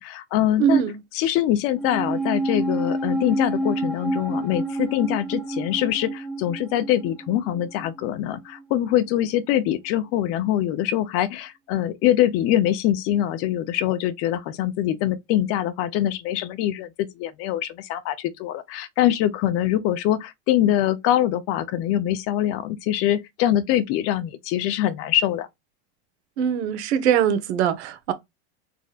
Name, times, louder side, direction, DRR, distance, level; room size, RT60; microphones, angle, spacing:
voice 1, 0.0-0.8 1.1-25.5, left 12 dB, 45° left, 0.7 m, -23 dB
voice 2, 0.6-0.9 26.4-28.1, right 8 dB, 70° right, 1.3 m, -21 dB
sound 1, 1.8-8.3 8.6-8.7, right 1 dB, 5° left, 0.6 m, -28 dB
4.9 x 4.2 x 2.4 m
supercardioid pair, 140°, 34 cm